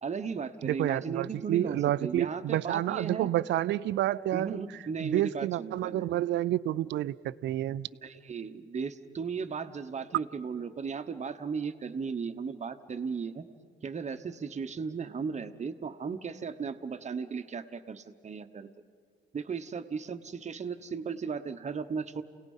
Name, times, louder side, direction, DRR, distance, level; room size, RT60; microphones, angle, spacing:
voice 1, 0.0-3.3 4.3-6.1 8.0-13.5 13.8-18.7 19.3-22.2, right 5 dB, 35° right, 9 dB, 1.1 m, -36 dB
voice 2, 0.6-4.6 5.0-7.9, right 13 dB, 65° right, 16 dB, 0.4 m, -29 dB
28.5 x 18.0 x 5.5 m, 2.1 s
cardioid pair, 90°, 20 cm